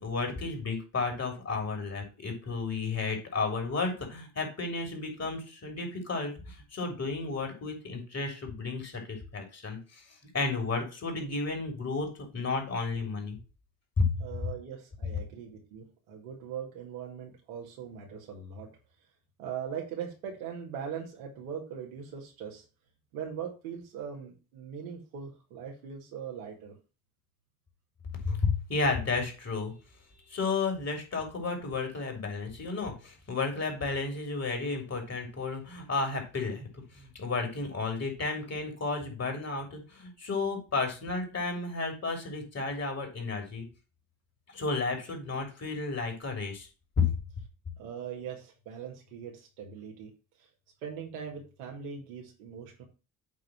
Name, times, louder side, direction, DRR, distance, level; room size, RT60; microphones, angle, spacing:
voice 1, 0.0-10.0 10.3-12.1 12.3-13.4 14.0-14.1 28.2-29.7 30.3-43.7 44.5-46.7 47.0-47.1, left 4 dB, 35° left, 3 dB, 3.4 m, -32 dB
voice 2, 14.2-18.7 19.4-22.6 23.1-26.8 47.8-50.1 50.4-50.5 50.8-52.8, right 7 dB, 85° right, 1 dB, 2.2 m, -40 dB
8.5 x 3.1 x 6.1 m, 0.32 s
hypercardioid pair, 70°, 42 cm